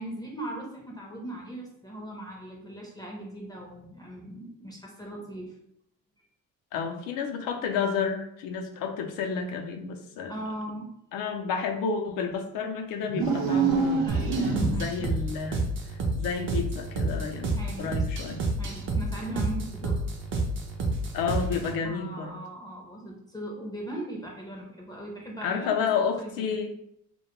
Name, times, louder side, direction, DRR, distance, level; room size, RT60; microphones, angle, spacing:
voice 1, 0.0-5.5 10.3-10.9 14.1-15.1 17.4-17.9 18.6-19.9 21.8-25.9 26.2-26.5, right 1 dB, 10° left, -2 dB, 0.5 m, -39 dB
voice 2, 6.7-10.3 11.1-14.1 14.7-18.5 21.1-22.4 25.4-26.7, left 5 dB, 75° left, 5 dB, 0.5 m, -31 dB
sound 1, 13.1-15.1, right 5 dB, 85° right, 0.6 m, -26 dB
sound 2, 14.1-21.8, right 2 dB, 35° right, 0.5 m, -30 dB
2.2 x 2.1 x 2.9 m, 0.75 s
supercardioid pair, 80°, 34 cm